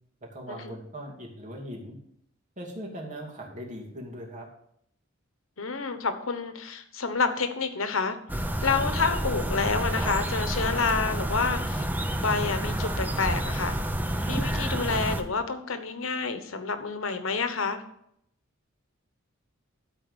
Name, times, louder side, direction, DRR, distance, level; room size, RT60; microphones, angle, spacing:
voice 1, 0.2-2.0 2.6-4.5, equal, 40° right, -1 dB, 2.6 m, -40 dB
voice 2, 5.6-8.2 8.6-11.9 12.2-13.8 14.3-17.8, left 4 dB, 85° left, 9 dB, 1.1 m, -28 dB
sound 1, 8.3-15.2, right 1 dB, 10° right, 0.7 m, -29 dB
13.0 x 4.5 x 7.0 m, 0.72 s
head